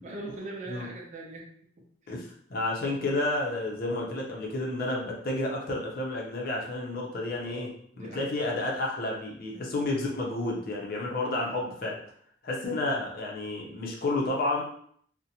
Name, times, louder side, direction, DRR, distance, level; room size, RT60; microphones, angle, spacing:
voice 1, 0.0-1.5 1.8-2.1 7.4-8.3 9.9-10.0 11.2-11.4, right 2 dB, 40° right, 0 dB, 0.5 m, -42 dB
voice 2, 2.1-7.7 8.0-12.0 12.4-14.6, left 2 dB, 55° left, -2 dB, 0.6 m, -31 dB
2.5 x 2.1 x 2.8 m, 0.63 s
head